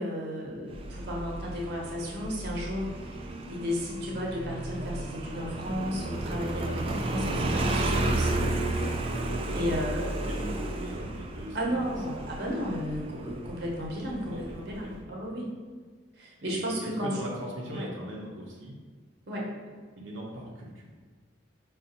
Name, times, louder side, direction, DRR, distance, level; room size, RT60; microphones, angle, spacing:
voice 1, 0.0-8.6 9.5-10.3 11.5-15.5 16.2-17.2 17.7-17.9 19.3-19.5, equal, 60° right, -3 dB, 0.8 m, -34 dB
Motorcycle, 0.7-15.0, right 2 dB, 30° right, 0.3 m, -32 dB
voice 2, 10.2-12.3 14.3-15.0 16.4-18.8 20.0-20.9, equal, 85° right, -3 dB, 0.6 m, -40 dB
5.4 x 2.3 x 2.6 m, 1.5 s
head